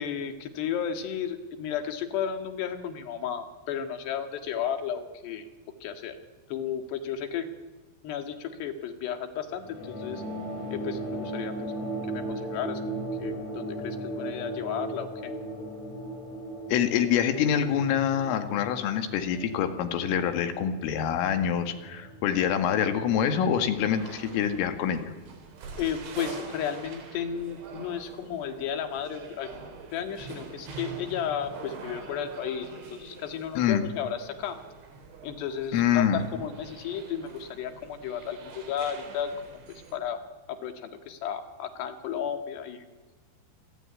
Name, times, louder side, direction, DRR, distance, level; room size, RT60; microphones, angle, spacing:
voice 1, 0.0-5.5 5.8-6.2 6.5-7.5 8.0-10.2 10.7-11.5 12.1-15.3 25.8-34.6 35.2-39.3 39.7-40.2 40.5-42.9, left 8 dB, 65° left, 8 dB, 3.6 m, -33 dB
sound 1, 9.6-24.5, right 1 dB, 40° left, 5.1 m, -38 dB
voice 2, 16.7-25.1 33.6-33.8 35.7-36.2, left 8 dB, 85° left, 8 dB, 4.6 m, -26 dB
sound 2, 23.9-40.0, right 4 dB, 70° right, 6.4 m, -45 dB
28.0 x 21.0 x 9.8 m, 1.3 s
omnidirectional pair, 5.7 m